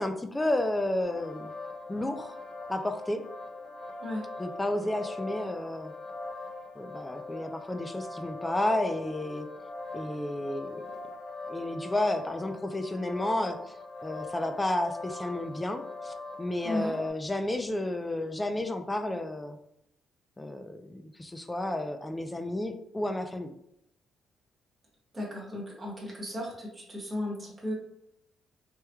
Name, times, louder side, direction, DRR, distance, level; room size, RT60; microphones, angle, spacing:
voice 1, 0.0-1.5 1.9-2.3 2.7-3.2 4.4-5.9 6.8-9.5 9.9-10.9 11.5-13.8 14.0-19.6 20.4-23.5, left 1 dB, 15° left, 7 dB, 0.3 m, -31 dB
sound 1, 1.0-17.1, left 3 dB, 45° left, 0.7 m, -41 dB
voice 2, 25.1-27.7, left 1 dB, 20° right, -4 dB, 1.2 m, -35 dB
3.4 x 3.0 x 2.2 m, 0.80 s
cardioid pair, 90°, 0 cm